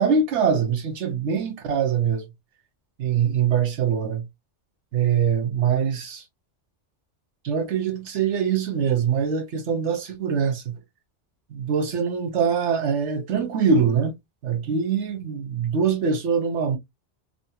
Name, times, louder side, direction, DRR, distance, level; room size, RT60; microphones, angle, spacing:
voice 1, 0.0-2.3 3.0-4.2 4.9-6.2 7.4-10.8 11.5-14.1 14.4-16.8, right 6 dB, 80° right, 1.1 m, -23 dB
3.0 x 2.5 x 2.8 m
omnidirectional pair, 1.2 m